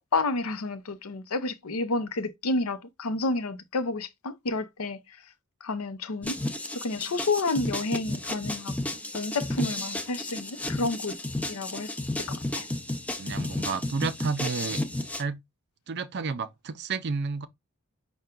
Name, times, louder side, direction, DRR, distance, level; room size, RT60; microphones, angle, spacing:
voice 1, 0.1-5.0 5.6-6.4 6.7-8.7 9.1-11.1 11.5-11.9 12.2-12.7, left 3 dB, 75° left, 0.6 m, -30 dB
sound 1, 6.2-15.2, left 1 dB, 5° left, 0.4 m, -33 dB
voice 2, 13.2-14.8 15.2-15.4 15.9-17.5, right 4 dB, 50° right, 0.5 m, -31 dB
5.6 x 2.2 x 3.7 m
head